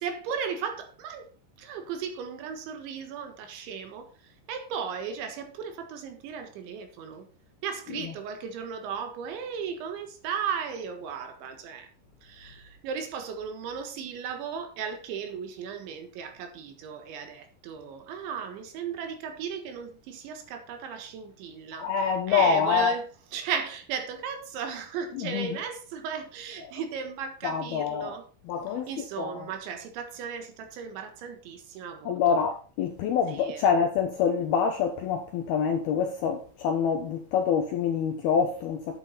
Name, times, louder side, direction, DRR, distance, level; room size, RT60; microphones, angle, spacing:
voice 1, 0.0-1.3 1.6-7.3 7.6-11.9 12.2-28.3 28.7-32.4 33.3-33.8, right 6 dB, 70° right, 3.6 m, -36 dB
voice 2, 21.8-22.9 25.2-25.6 26.6-26.7 27.4-28.2 28.5-29.5 32.1-39.0, left 6 dB, 70° left, 2.4 m, -26 dB
11.0 x 9.3 x 4.1 m
omnidirectional pair, 5.8 m